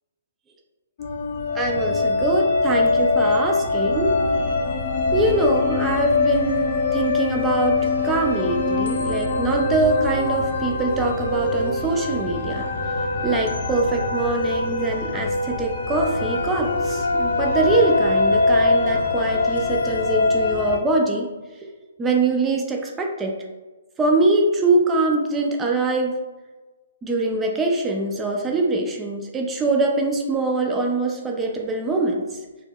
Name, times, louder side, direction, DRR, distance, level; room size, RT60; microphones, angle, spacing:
sound 1, 1.0-20.8, left 3 dB, 55° left, 0.6 m, -23 dB
voice 1, 1.5-4.2 5.1-12.6 13.2-21.3 22.0-23.3 24.0-26.1 27.0-32.3, right 2 dB, 10° right, 1 dB, 0.4 m, -23 dB
4.5 x 2.9 x 2.2 m, 1.2 s
hypercardioid pair, 155°, 0 cm